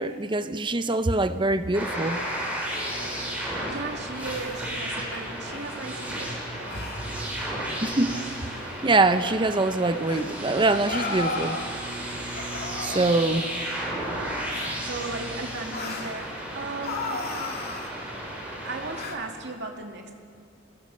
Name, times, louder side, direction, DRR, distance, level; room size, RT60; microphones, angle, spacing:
voice 1, 0.0-2.2 7.8-8.1 8.8-11.6 12.9-13.5, right 2 dB, 25° right, 11 dB, 0.7 m, -23 dB
sound 1, 1.7-19.0, right 1 dB, 10° right, 6.1 m, -33 dB
sound 2, 2.7-3.3 4.1-4.5 5.1-5.2 5.5-5.8 6.7-7.1 8.1-8.2 9.2-9.4 10.0-10.3 10.9-11.7 12.3-13.8 14.5-14.8 15.7-16.2 16.8-17.9 18.9-19.2, left 3 dB, 55° left, 2.5 m, -35 dB
voice 2, 3.1-7.3 12.8-13.3 14.8-17.3 18.6-20.1, right 3 dB, 65° right, 2 dB, 2.4 m, -37 dB
29.0 x 21.0 x 5.4 m, 2.2 s
head